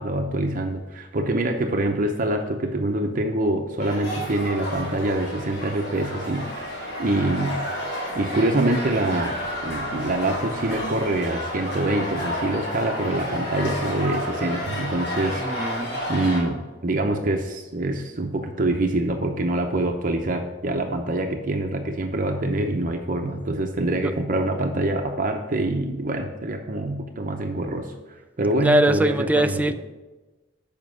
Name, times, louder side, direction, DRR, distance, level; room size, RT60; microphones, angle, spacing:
voice 1, 0.0-7.6 8.1-9.4 9.6-15.7 16.1-27.9 28.4-29.7, right 1 dB, 45° right, 4 dB, 0.7 m, -25 dB
sound 1, 3.8-16.4, equal, 65° left, 3.0 m, -31 dB
voice 2, 15.4-16.0 28.6-29.7, right 1 dB, 10° right, 9 dB, 0.3 m, -21 dB
7.3 x 5.2 x 6.2 m, 1.2 s
head